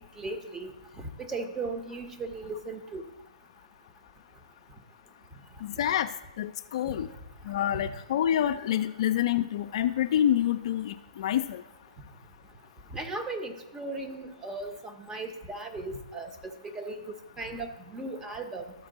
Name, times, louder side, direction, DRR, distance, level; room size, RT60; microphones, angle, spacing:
voice 1, 0.2-3.0 7.7-7.9 12.9-18.7, right 2 dB, 10° right, 5 dB, 0.8 m, -37 dB
voice 2, 5.6-6.1 6.4-7.1 7.5-11.6, left 11 dB, 45° left, 9 dB, 0.4 m, -27 dB
13.0 x 4.5 x 3.9 m, 0.99 s
hypercardioid pair, 145°, 4 cm